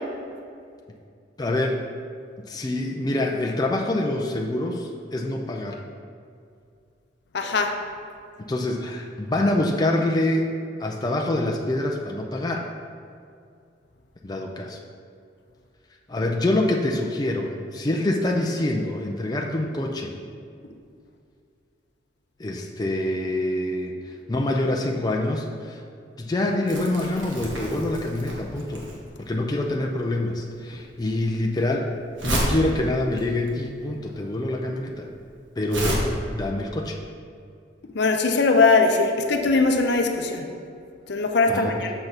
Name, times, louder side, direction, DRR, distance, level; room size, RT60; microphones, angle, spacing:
voice 1, 1.4-1.8 2.5-5.8 8.5-10.5 10.8-12.6 14.2-14.8 16.1-20.1 22.4-24.0 24.3-25.8 26.2-28.9 29.2-31.9 32.2-35.1 35.6-36.1 36.3-37.0 41.5-41.9, left 1 dB, 20° left, 1 dB, 0.4 m, -25 dB
voice 2, 7.3-7.7 37.9-40.5 41.1-41.9, left 3 dB, 65° left, 4 dB, 0.6 m, -20 dB
Crumpling crinkling, 26.7-36.0, right 1 dB, 90° right, 1.3 m, -31 dB
6.5 x 5.9 x 4.0 m, 2.3 s
head